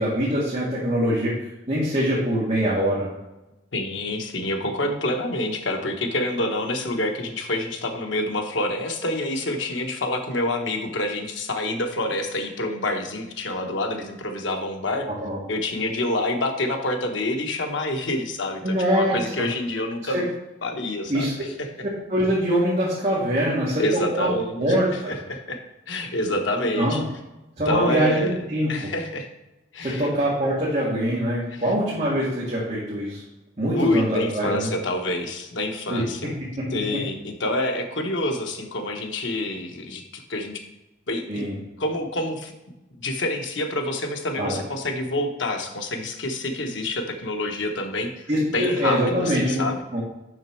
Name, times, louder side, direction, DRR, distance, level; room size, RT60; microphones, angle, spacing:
voice 1, 0.0-1.3 1.7-3.1 15.2-15.4 18.6-19.2 21.1-21.3 21.8-24.3 24.6-25.2 26.7-27.0 27.6-28.9 29.8-33.2 33.6-34.7 35.9-36.0 41.3-41.6 44.4-44.6 48.3-49.7 49.9-50.0, equal, 35° right, -7 dB, 1.7 m, -23 dB
voice 2, 3.7-15.1 15.5-20.3 20.6-21.5 23.8-24.6 24.9-25.6 25.9-27.0 27.7-28.4 28.7-29.3 29.7-30.1 31.5-31.6 33.7-36.3 36.7-40.5 41.1-41.4 41.8-42.5 43.0-49.8, left 1 dB, 85° left, 4 dB, 1.0 m, -27 dB
6.4 x 6.1 x 4.4 m, 0.98 s
head